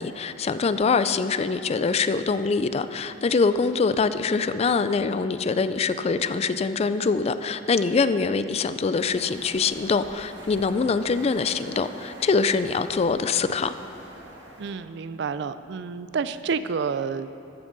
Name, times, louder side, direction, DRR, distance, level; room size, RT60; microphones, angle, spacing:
voice 1, 0.0-13.7, left 4 dB, 35° left, 12 dB, 0.3 m, -24 dB
sound 1, 8.9-14.7, right 1 dB, 85° right, 1.5 m, -45 dB
voice 2, 14.6-17.3, right 5 dB, 70° right, 13 dB, 0.4 m, -29 dB
14.0 x 8.9 x 4.0 m, 2.6 s
head